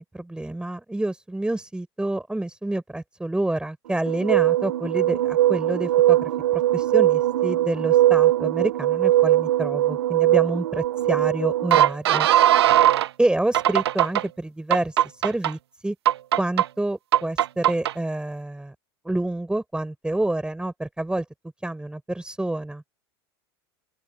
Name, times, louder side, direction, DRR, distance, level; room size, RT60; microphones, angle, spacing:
voice 1, 0.0-12.3 13.2-15.9 16.4-18.7 19.0-21.2 21.6-22.8, right 1 dB, 5° right, 6.5 m, -28 dB
sound 1, 4.1-13.1 13.5-14.2 14.7-15.5 16.1-16.7 17.1-17.9, right 13 dB, 85° right, 0.8 m, -20 dB
open air
hypercardioid pair, 90°, 13 cm